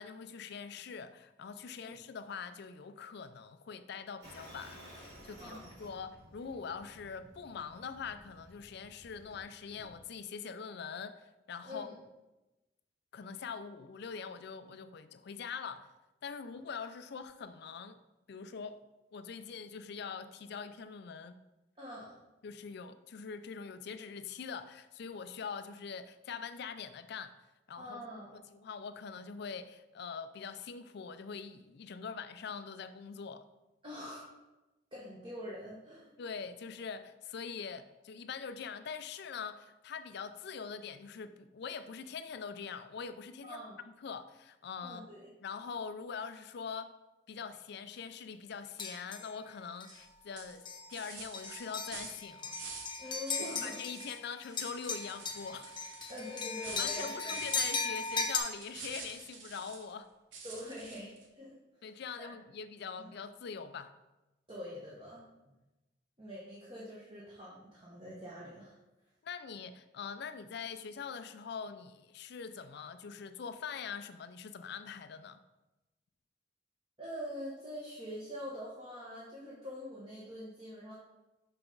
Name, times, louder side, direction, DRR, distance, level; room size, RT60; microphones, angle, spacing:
voice 1, 0.0-11.9 13.1-15.9 16.2-18.0 18.3-18.8 19.1-21.4 22.4-27.3 27.7-28.0 28.3-33.5 36.2-43.6 44.0-45.0 45.4-46.9 47.3-52.6 53.0-55.7 56.8-60.1 61.8-63.9 69.2-75.4, left 6 dB, 60° left, 0.4 m, -43 dB
sound 1, 4.2-10.0, equal, 65° right, 2.5 m, -55 dB
voice 2, 21.8-22.2 27.8-28.4 33.8-34.2 34.9-36.1 43.4-43.8 44.8-45.3 53.0-53.8 56.1-57.4 60.4-61.6 62.2-62.3 63.0-63.1 64.5-65.2 66.2-68.7 77.0-80.9, equal, 30° right, 1.2 m, -44 dB
sound 2, 48.8-49.3 49.8-50.0 50.7-51.0 51.3-54.2 54.4-58.4, left 4 dB, 25° left, 0.8 m, -37 dB
sound 3, 49.9-50.1 50.4-53.0 53.3-54.2 54.5-59.9 60.3-61.2, right 4 dB, 85° right, 1.0 m, -48 dB
5.8 x 5.7 x 3.9 m
head